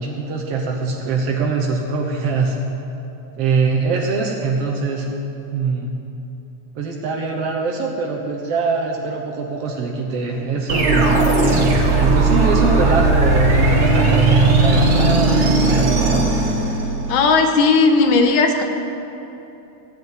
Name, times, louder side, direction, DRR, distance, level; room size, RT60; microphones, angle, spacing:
voice 1, 0.0-2.6 3.4-5.1 5.5-5.9 6.8-11.2 12.0-16.1, right 4 dB, 65° right, 0 dB, 1.8 m, -22 dB
sound 1, 10.7-17.2, right 3 dB, 50° right, 1.7 m, -16 dB
voice 2, 17.1-18.6, left 4 dB, 85° left, 5 dB, 2.4 m, -15 dB
15.0 x 5.1 x 9.3 m, 3.0 s
omnidirectional pair, 3.5 m